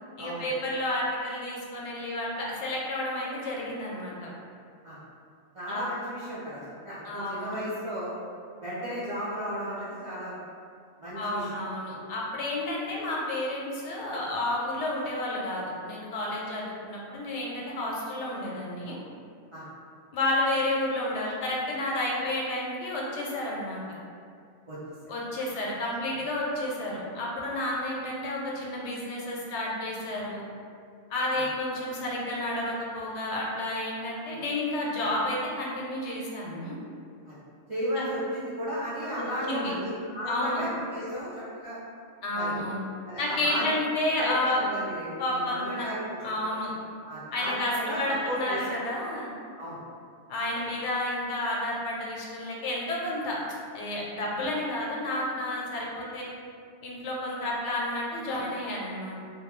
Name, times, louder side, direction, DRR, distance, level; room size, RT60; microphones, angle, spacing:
voice 1, 0.2-4.3 5.7-5.8 7.0-7.6 11.1-19.0 20.1-23.8 25.1-30.4 31.1-36.8 38.0-38.1 39.1-39.7 40.3-40.6 42.2-42.8 43.2-44.6 45.2-45.9 46.2-46.7 47.3-49.4 50.3-53.4 53.7-56.3 56.8-59.2, left 1 dB, 85° left, -3 dB, 0.9 m, -31 dB
voice 2, 5.5-6.6 6.8-8.1 8.6-10.3 11.0-11.6 19.5-19.7 24.7-24.8 37.3-37.4 37.7-41.8 42.3-42.6 43.1-43.7 44.2-46.3 47.1-48.7 49.6-49.8, equal, 55° right, -11 dB, 0.3 m, -34 dB
2.2 x 2.2 x 3.0 m, 2.3 s
omnidirectional pair, 1.2 m